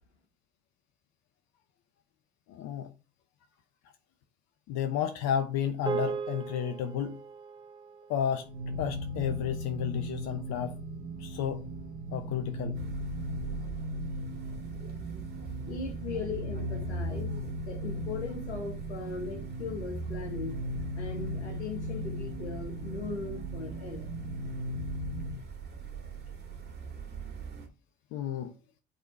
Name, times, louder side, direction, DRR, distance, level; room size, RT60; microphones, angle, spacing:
voice 1, 2.5-2.9 4.7-7.2 8.1-8.5 8.8-10.7 11.2-11.6 12.1-12.8 28.1-28.5, left 9 dB, 50° left, 0.8 m, -32 dB
sound 1, 5.9-10.4, right 5 dB, 15° right, 1.4 m, -39 dB
sound 2, 8.4-25.4, equal, 75° right, 1.9 m, -38 dB
sound 3, 12.7-27.7, right 5 dB, 30° right, 2.2 m, -42 dB
voice 2, 15.7-17.3 17.6-20.6 20.9-24.1, left 4 dB, 80° left, 1.7 m, -38 dB
9.1 x 4.1 x 3.2 m
figure-of-eight pair, 60°, 34 cm